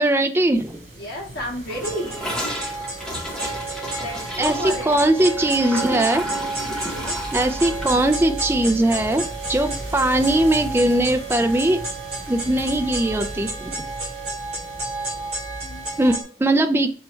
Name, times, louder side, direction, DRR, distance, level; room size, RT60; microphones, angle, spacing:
voice 1, 0.0-0.8 4.4-6.3 7.3-9.2 9.5-11.8 12.3-13.7 16.0-16.9, right 1 dB, 10° right, 6 dB, 0.3 m, -20 dB
sound 1, 0.5-16.2, right 1 dB, 50° right, 1.9 m, -37 dB
voice 2, 0.9-2.4 4.0-5.0 6.8-7.2 15.6-15.9, equal, 55° left, -5 dB, 2.1 m, -32 dB
Gurgling / Toilet flush, 1.7-10.0 10.2-10.4 10.6-11.1 11.4-11.5 11.7-11.8 12.8-12.9, equal, 5° left, 0.9 m, -34 dB
sound 2, 1.8-16.2, right 2 dB, 35° right, 1.6 m, -31 dB
4.4 x 3.1 x 3.4 m, 0.42 s
head